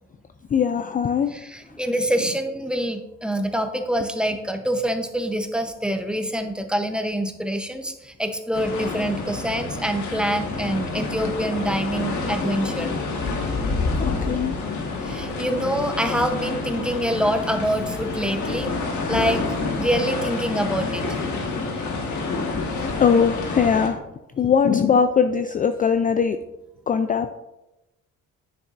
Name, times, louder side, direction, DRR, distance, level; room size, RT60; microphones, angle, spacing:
voice 1, 0.5-1.3 14.0-14.9 22.8-24.0 24.4-26.4 26.9-27.3, left 6 dB, 30° left, 9 dB, 0.4 m, -21 dB
voice 2, 1.3-12.9 15.0-18.8 19.1-19.4 19.8-21.2, equal, 5° right, 6 dB, 0.8 m, -25 dB
sound 1, 8.5-23.9, left 3 dB, 70° left, 1.6 m, -28 dB
9.3 x 6.7 x 2.5 m, 0.96 s
cardioid pair, 90°, 30 cm